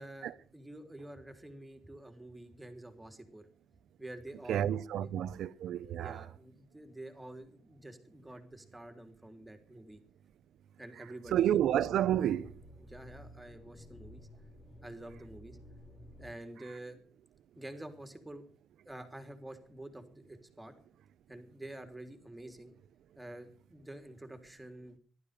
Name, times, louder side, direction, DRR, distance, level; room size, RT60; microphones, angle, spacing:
voice 1, 0.0-3.5 4.0-4.7 4.9-5.1 6.0-10.0 10.8-11.6 12.8-14.3 14.8-15.6 16.2-17.0 17.5-18.5 18.8-20.7 21.3-22.7 23.1-25.0, right 1 dB, 10° right, 3.3 m, -48 dB
voice 2, 4.5-6.2 11.3-12.5, right 11 dB, 75° right, 0.8 m, -30 dB
sound 1, 11.2-16.3, left 1 dB, 40° left, 3.9 m, -53 dB
15.0 x 12.5 x 6.7 m
cardioid pair, 90°, 0 cm